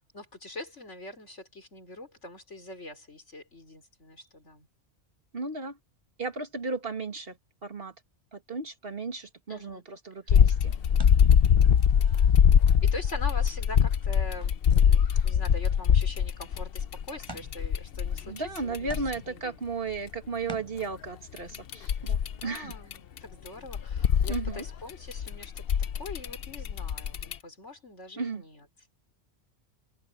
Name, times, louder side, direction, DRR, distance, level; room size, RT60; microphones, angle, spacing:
voice 1, 0.1-4.7 9.5-9.8 11.0-11.2 12.7-18.9 19.3-19.6 22.4-25.6 25.9-28.7, left 2 dB, 90° left, 4.7 m, -43 dB
voice 2, 5.3-5.8 6.2-7.4 7.6-7.9 8.3-10.7 18.3-22.8 24.3-24.7 28.2-28.4, right 4 dB, 55° right, 2.2 m, -35 dB
sound 1, 10.3-19.1 21.4-23.2 23.5-27.3, left 8 dB, 60° left, 0.8 m, -23 dB
sound 2, 11.0-13.6 13.9-14.0 14.6-14.8 15.1-15.2 15.4-16.3 17.3-17.8 18.5-18.6 18.9-19.5 20.5-20.9, equal, 20° right, 7.0 m, -47 dB
omnidirectional pair, 1.2 m